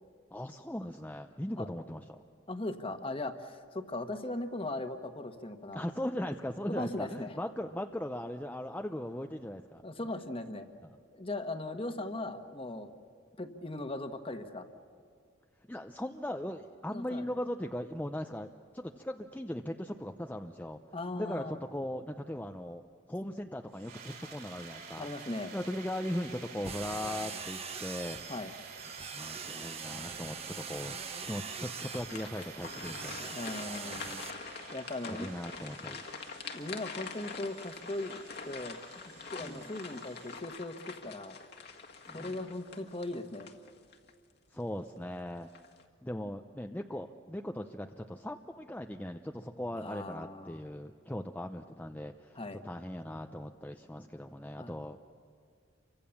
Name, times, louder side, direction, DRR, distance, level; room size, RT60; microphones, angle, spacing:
voice 1, 0.3-2.2 5.7-9.8 15.7-18.5 18.7-20.8 21.2-22.8 23.1-25.1 25.5-28.2 29.1-31.0 31.2-33.3 35.1-36.0 39.4-39.7 42.1-42.4 44.5-45.5 46.0-55.0, left 1 dB, 10° left, 5 dB, 0.6 m, -39 dB
voice 2, 2.5-5.9 6.7-7.4 9.8-10.7 11.1-12.9 13.4-14.7 16.9-17.2 20.9-21.6 25.0-25.5 28.3-28.5 33.2-34.2 34.7-35.3 36.5-38.2 38.4-38.8 39.3-41.4 42.1-43.5 49.7-50.6 52.3-52.6 54.6-54.7, left 2 dB, 30° left, 7 dB, 1.4 m, -38 dB
sound 1, 23.7-40.4, right 5 dB, 50° right, 4.2 m, -50 dB
sound 2, 26.6-34.3, right 5 dB, 30° right, 1.2 m, -43 dB
sound 3, 31.5-44.1 44.6-44.7 45.3-45.8, left 5 dB, 55° left, 1.8 m, -45 dB
29.0 x 24.5 x 7.1 m, 2.3 s
head